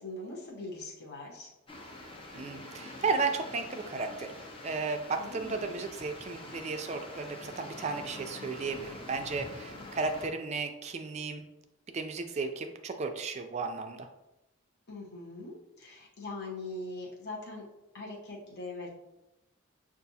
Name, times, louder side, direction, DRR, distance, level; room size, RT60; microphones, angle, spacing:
voice 1, 0.0-1.5 5.2-5.6 14.9-17.7 17.9-18.9, left 2 dB, 50° left, -4 dB, 0.8 m, -41 dB
sound 1, 1.7-10.3, left 1 dB, 25° left, 0.5 m, -45 dB
voice 2, 2.3-4.3 4.6-11.4 11.9-14.1, right 4 dB, 30° right, 6 dB, 0.3 m, -34 dB
5.7 x 2.4 x 2.7 m, 0.93 s
head